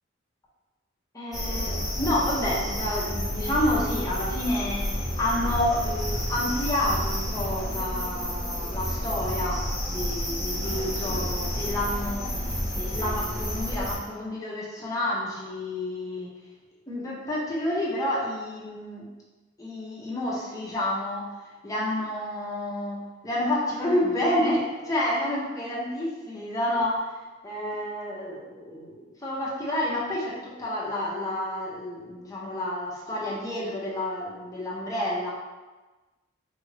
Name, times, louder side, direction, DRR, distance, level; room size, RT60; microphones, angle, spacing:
voice 1, 1.1-9.6 9.9-12.4 12.7-16.3 16.9-19.1 19.6-21.3 21.6-27.2 27.4-35.3, left 1 dB, 15° left, -6 dB, 0.9 m, -29 dB
sound 1, 1.3-14.0, equal, ahead, 1.2 m, -30 dB
4.7 x 2.6 x 3.3 m, 1.2 s
head